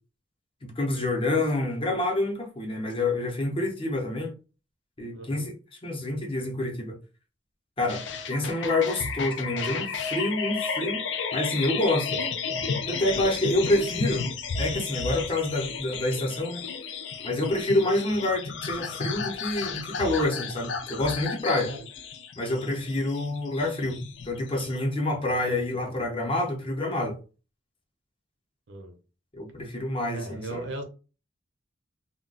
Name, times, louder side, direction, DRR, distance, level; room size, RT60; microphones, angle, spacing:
voice 1, 0.6-4.3 5.0-5.5 5.8-7.0 7.8-11.0 11.3-12.2 12.9-14.3 14.6-16.6 17.2-21.7 22.4-27.2 29.3-30.7, left 2 dB, 30° left, 0.7 m, -27 dB
voice 2, 5.1-5.5 21.6-21.8 28.7-29.0 30.1-30.8, right 2 dB, 70° right, 0.7 m, -37 dB
sound 1, 7.9-24.8, left 5 dB, 65° left, 0.4 m, -33 dB
2.3 x 2.1 x 3.8 m
head